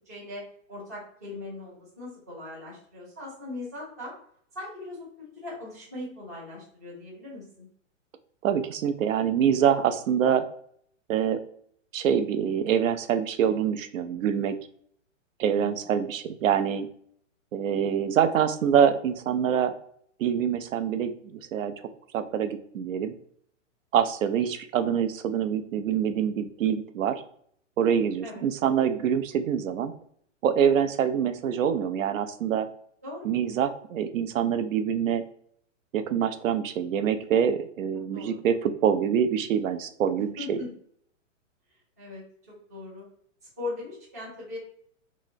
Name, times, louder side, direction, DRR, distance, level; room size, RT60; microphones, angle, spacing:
voice 1, 0.1-0.4 0.7-4.1 4.5-7.7 15.5-15.8 28.2-28.4 33.0-33.3 38.1-38.4 40.2-40.7 42.0-43.0 43.6-44.6, left 2 dB, 15° right, -8 dB, 0.3 m, -39 dB
voice 2, 8.4-10.5 11.1-11.4 11.9-14.6 15.4-16.9 17.5-19.7 20.2-21.7 22.1-23.1 23.9-27.2 27.8-29.9 30.4-32.7 33.2-35.2 35.9-40.6, right 8 dB, 90° right, 9 dB, 0.6 m, -25 dB
3.7 x 2.1 x 2.5 m, 0.64 s
hypercardioid pair, 170°, 38 cm